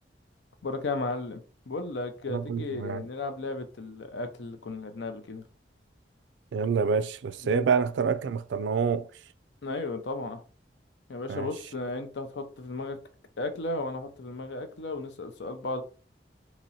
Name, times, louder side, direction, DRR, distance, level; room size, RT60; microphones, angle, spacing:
voice 1, 0.6-5.4 7.4-7.7 9.6-10.4 11.1-13.0 13.4-15.8, left 2 dB, 80° left, 0.6 m, -34 dB
voice 2, 2.3-3.0 6.5-9.1 11.3-11.5, right 5 dB, 85° right, 0.4 m, -27 dB
2.9 x 2.9 x 4.0 m
head